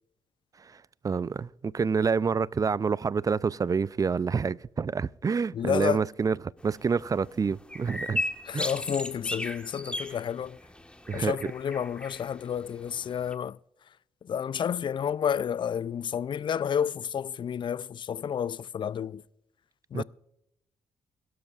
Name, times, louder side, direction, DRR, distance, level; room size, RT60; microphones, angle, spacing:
voice 1, 1.0-6.4 6.6-8.2 8.5-8.7 11.1-11.3 19.9-20.0, right 5 dB, 35° right, 0.4 m, -27 dB
voice 2, 5.5-6.1 8.5-10.6 11.1-13.6 14.2-19.2 19.9-20.0, left 8 dB, 50° left, 0.4 m, -30 dB
sound 1, 6.6-13.3, left 1 dB, 10° left, 1.4 m, -37 dB
22.5 x 12.5 x 2.5 m
supercardioid pair, 50°, 11 cm